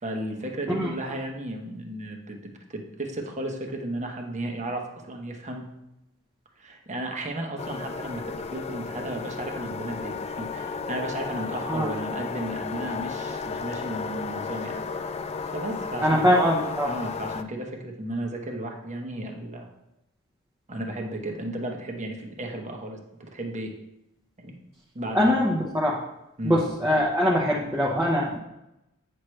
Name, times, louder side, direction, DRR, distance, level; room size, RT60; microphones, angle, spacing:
voice 1, 0.0-5.7 6.6-14.8 15.5-16.5 16.9-19.7 20.7-23.7 24.4-24.6 24.9-25.4 26.4-26.6, right 1 dB, 35° right, 2 dB, 1.0 m, -34 dB
sound 1, 7.6-17.4, left 5 dB, 30° left, 0.3 m, -33 dB
voice 2, 16.0-16.9 25.1-26.0 26.4-28.4, equal, 10° right, -3 dB, 0.8 m, -22 dB
8.8 x 6.2 x 3.3 m, 0.90 s
head